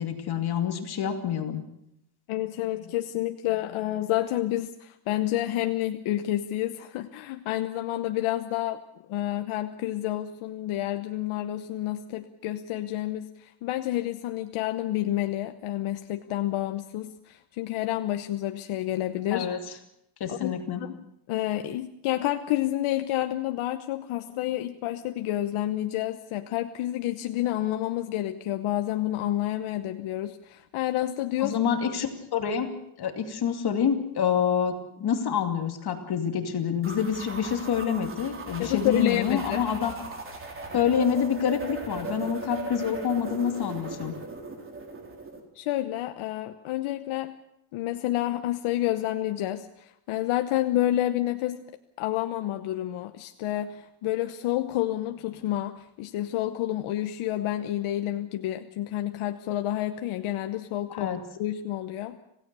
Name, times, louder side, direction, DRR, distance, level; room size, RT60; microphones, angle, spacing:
voice 1, 0.0-1.6 19.3-19.6 20.2-20.8 31.4-32.7 33.0-39.9 40.7-44.1 60.9-61.2, left 7 dB, 50° left, 5 dB, 2.6 m, -27 dB
voice 2, 2.3-8.8 9.1-19.5 20.3-21.0 21.3-31.6 38.6-39.7 45.5-47.3 47.7-51.6 52.0-61.1 61.4-62.2, left 14 dB, 85° left, 7 dB, 1.1 m, -29 dB
sound 1, 36.8-45.4, right 3 dB, 25° right, 3.8 m, -38 dB
26.5 x 17.0 x 6.9 m, 0.80 s
cardioid pair, 140°, 48 cm